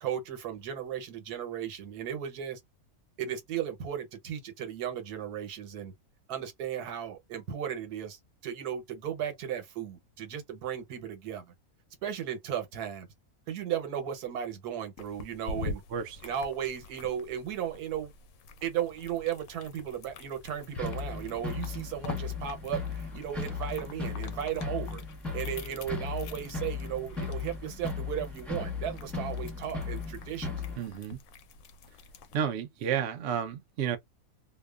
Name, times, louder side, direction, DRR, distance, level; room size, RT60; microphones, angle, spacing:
voice 1, 0.0-2.6 3.2-5.9 6.3-11.4 12.0-13.1 13.5-15.8 16.2-18.1 18.6-25.0 25.3-30.5, right 9 dB, 85° right, 1.3 m, -35 dB
sound 1, 15.0-32.4, left 3 dB, 70° left, 0.9 m, -46 dB
sound 2, 20.7-30.8, left 4 dB, ahead, 0.8 m, -36 dB
voice 2, 30.8-31.2 32.3-34.0, right 8 dB, 60° right, 0.7 m, -31 dB
2.8 x 2.1 x 2.3 m
omnidirectional pair, 1.6 m